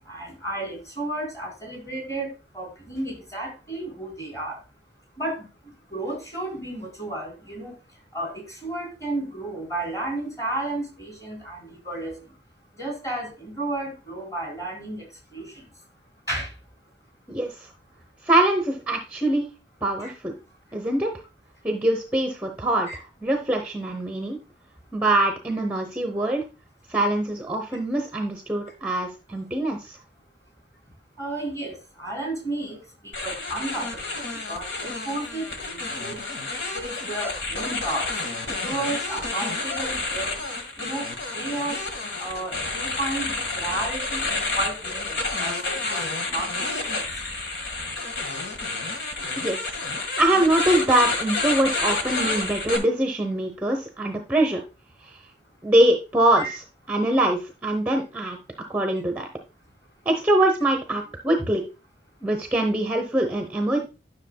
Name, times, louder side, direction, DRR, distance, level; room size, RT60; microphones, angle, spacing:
voice 1, 0.0-2.3 2.5-4.6 5.2-5.5 5.9-7.7 8.1-12.2 12.8-15.6 16.3-16.5 20.0-20.1 22.9-23.0 31.2-36.4 36.7-40.4 40.8-41.8 42.2-47.1 52.0-52.1 56.4-56.5, right 2 dB, 15° left, 1 dB, 3.6 m, -33 dB
voice 2, 17.3-17.7 18.2-19.5 19.8-20.3 20.7-21.1 21.6-22.9 23.2-24.4 24.9-26.5 26.9-30.0 49.4-49.6 50.2-54.6 55.6-56.6 56.9-58.4 58.7-59.3 60.1-61.6 62.2-63.8, right 1 dB, 10° right, 4 dB, 0.8 m, -23 dB
sound 1, 33.1-52.8, left 3 dB, 80° left, 1.6 m, -29 dB
10.5 x 6.2 x 2.2 m, 0.31 s
head